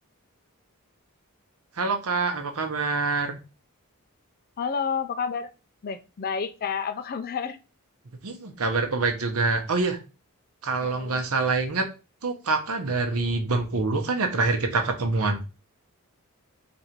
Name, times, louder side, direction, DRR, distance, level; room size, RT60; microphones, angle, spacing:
voice 1, 1.7-3.4 8.2-10.0 10.6-11.9 12.2-15.4, right 3 dB, 75° right, 5 dB, 0.9 m, -25 dB
voice 2, 4.6-5.5 5.8-7.6 10.8-11.2, left 6 dB, 45° left, 10 dB, 0.4 m, -30 dB
3.9 x 2.6 x 4.5 m, 0.31 s
head